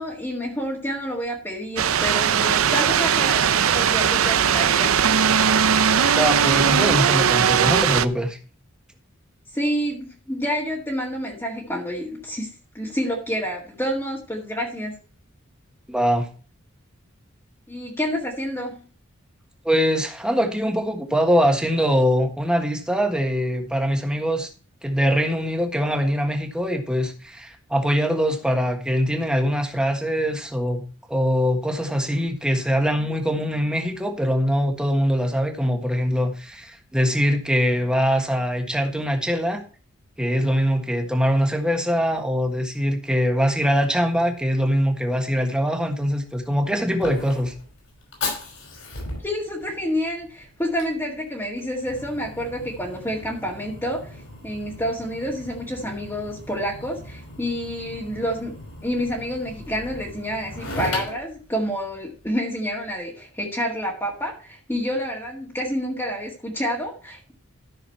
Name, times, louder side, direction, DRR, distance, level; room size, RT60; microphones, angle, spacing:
voice 1, 0.0-4.9 9.5-14.9 17.7-18.8 49.2-58.5 58.8-67.3, equal, 10° left, -3 dB, 1.8 m, -28 dB
sound 1, 1.8-8.0, right 8 dB, 80° right, 0.6 m, -19 dB
voice 2, 6.2-8.4 15.9-16.3 19.6-24.5 24.8-30.8 31.1-39.6 40.2-47.5, equal, 5° right, 3 dB, 1.5 m, -22 dB
Fire, 46.1-62.3, left 2 dB, 75° left, 5.5 m, -38 dB
13.5 x 6.4 x 4.4 m, 0.38 s
head